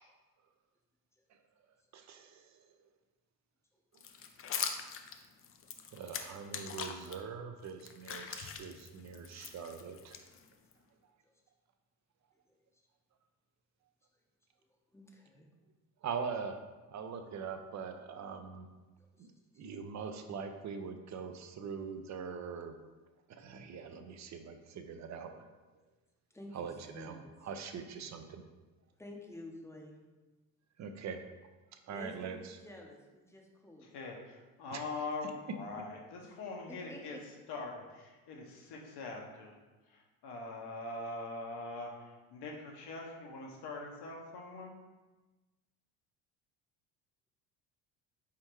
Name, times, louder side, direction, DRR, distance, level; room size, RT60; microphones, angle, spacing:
voice 1, 1.9-2.9 3.9-4.0 5.9-10.2 16.0-16.6 16.9-18.7 19.2-22.7 23.3-25.5 26.5-28.4 30.8-31.2 31.7-32.6 34.7-34.8, right 6 dB, 40° right, 7 dB, 0.5 m, -43 dB
sound 1, 4.0-7.2 7.6-10.7, left 7 dB, 30° left, 0.4 m, -42 dB
voice 2, 14.9-15.5 19.0-19.3 26.3-27.3 29.0-30.0 31.9-34.0 36.2-36.4 36.7-37.2, left 1 dB, 5° left, 0 dB, 0.7 m, -50 dB
voice 3, 33.8-39.6 39.9-44.7, left 3 dB, 60° left, 0 dB, 1.1 m, -43 dB
4.3 x 3.7 x 3.0 m, 1.2 s
hypercardioid pair, 70°, 45 cm